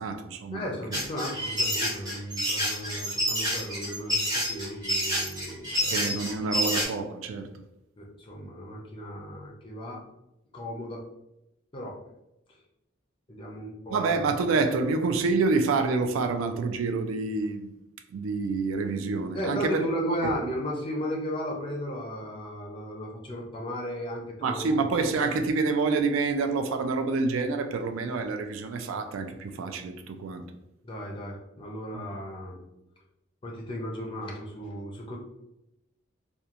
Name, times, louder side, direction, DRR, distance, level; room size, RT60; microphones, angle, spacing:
voice 1, 0.0-0.7 5.9-7.5 13.9-17.7 18.1-19.8 24.4-30.4 31.9-32.0, right 4 dB, 85° right, 7 dB, 0.3 m, -27 dB
voice 2, 0.5-5.9 8.0-10.0 10.5-11.0 11.7-12.0 13.3-14.1 19.3-24.8 30.8-32.6 33.4-35.2, equal, 25° left, -1 dB, 0.4 m, -35 dB
sound 1, 0.9-6.8, equal, 20° right, 0.6 m, -28 dB
2.8 x 2.2 x 2.4 m, 0.87 s
head